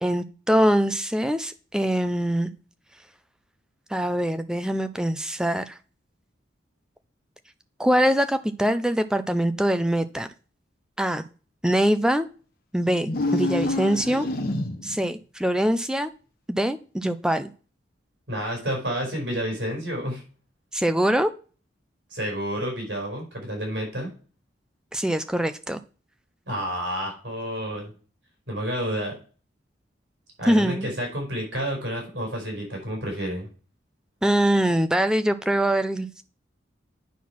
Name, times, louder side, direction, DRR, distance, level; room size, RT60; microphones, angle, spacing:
voice 1, 0.0-2.5 3.9-5.8 7.8-10.3 11.0-11.2 11.6-12.3 12.7-14.3 14.8-16.1 16.5-17.5 20.7-21.3 24.9-25.8 30.5-30.9 34.2-36.2, equal, 5° right, 10 dB, 0.5 m, -23 dB
sound 1, 13.0-15.0, left 2 dB, 50° left, 1.1 m, -27 dB
voice 2, 18.3-20.2 22.1-24.1 26.5-27.9 28.5-29.1 30.4-33.5, equal, 65° right, 0 dB, 4.7 m, -30 dB
9.4 x 4.4 x 5.9 m, 0.38 s
head